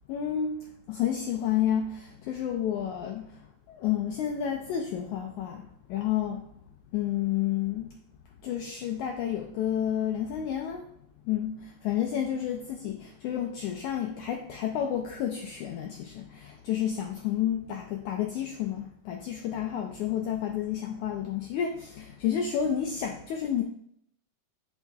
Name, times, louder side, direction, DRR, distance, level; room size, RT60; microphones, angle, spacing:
voice 1, 0.1-0.6 0.9-3.3 3.7-5.6 5.9-6.4 6.9-7.9 8.4-10.8 11.3-23.6, left 9 dB, 85° left, 3 dB, 1.7 m, -30 dB
9.6 x 5.7 x 2.3 m, 0.68 s
omnidirectional pair, 4.1 m